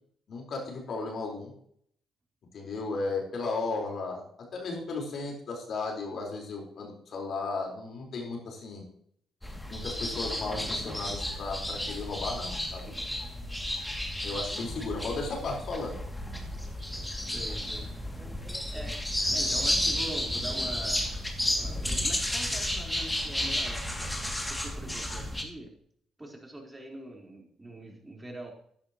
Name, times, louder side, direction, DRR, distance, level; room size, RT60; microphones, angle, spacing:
voice 1, 0.3-1.5 2.5-4.2 4.5-8.8 9.7-12.9 14.2-16.0, left 3 dB, 55° left, 0 dB, 4.5 m, -35 dB
sound 1, 9.4-25.4, left 1 dB, 10° left, 2.5 m, -32 dB
voice 2, 17.3-17.9 18.7-19.0 19.3-21.1 21.6-24.1 24.5-25.7 26.2-28.5, right 1 dB, 20° right, 0 dB, 4.2 m, -43 dB
14.5 x 10.5 x 3.1 m, 0.66 s
hypercardioid pair, 45°, 0 cm